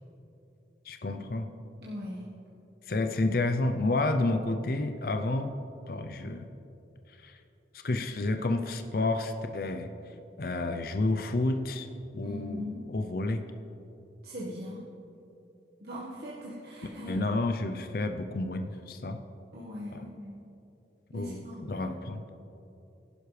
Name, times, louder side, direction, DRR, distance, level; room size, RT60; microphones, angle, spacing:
voice 1, 0.9-1.5 2.9-5.5 5.9-6.5 7.2-7.3 7.7-9.9 10.4-11.9 12.1-13.4 17.1-19.2 19.9-20.0 21.1-21.4 21.7-22.2, left 2 dB, 55° left, 7 dB, 0.5 m, -30 dB
voice 2, 1.8-2.3 12.2-12.8 14.2-14.8 15.8-17.2 19.5-20.4 21.1-22.0, left 1 dB, 55° right, -7 dB, 1.5 m, -40 dB
16.0 x 11.5 x 3.3 m, 2.8 s
head